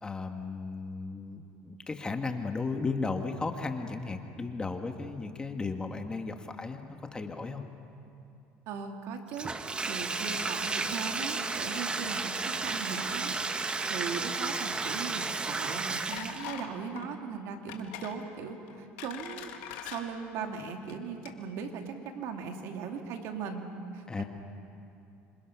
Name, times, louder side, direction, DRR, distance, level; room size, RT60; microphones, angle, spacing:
voice 1, 0.0-7.6 24.1-24.2, left 4 dB, 15° left, 5 dB, 1.5 m, -35 dB
voice 2, 8.7-9.5 9.9-19.5 19.8-24.2, right 6 dB, 65° right, 3 dB, 2.7 m, -38 dB
Bathtub (filling or washing), 9.3-16.6, right 3 dB, 20° right, 1.1 m, -33 dB
sound 1, 16.1-16.7 17.0-17.2 17.7-18.2 18.7-20.0 20.8-20.9 21.2-21.3, left 11 dB, 85° left, 2.2 m, -42 dB
27.5 x 26.0 x 6.0 m, 2.6 s
cardioid pair, 120°, 5 cm